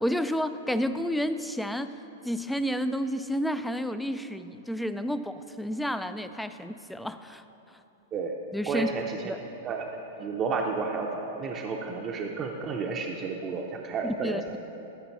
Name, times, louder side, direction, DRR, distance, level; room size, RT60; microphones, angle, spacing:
voice 1, 0.0-2.0 2.2-7.4 8.5-8.9 9.2-9.4 14.0-14.6, equal, 5° left, 11 dB, 0.3 m, -30 dB
voice 2, 8.7-9.3 9.6-9.9 10.2-14.4, right 4 dB, 30° right, 1 dB, 0.6 m, -31 dB
13.0 x 5.1 x 4.7 m, 2.9 s
hypercardioid pair, 125°, 0 cm